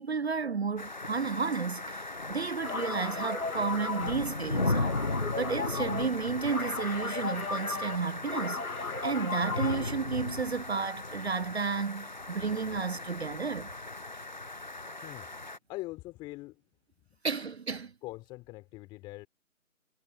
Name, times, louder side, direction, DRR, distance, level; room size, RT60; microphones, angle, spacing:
voice 1, 0.0-5.0 5.4-13.7 17.2-17.9, right 5 dB, 50° right, 0.6 m, -32 dB
sound 1, 0.8-15.6, left 2 dB, 35° left, 0.5 m, -37 dB
sound 2, 2.6-10.0, left 4 dB, 85° left, 1.9 m, -36 dB
voice 2, 15.7-16.6 17.1-17.2 18.0-19.3, left 20 dB, 10° left, 4.0 m, -42 dB
figure-of-eight pair, 160°, 42 cm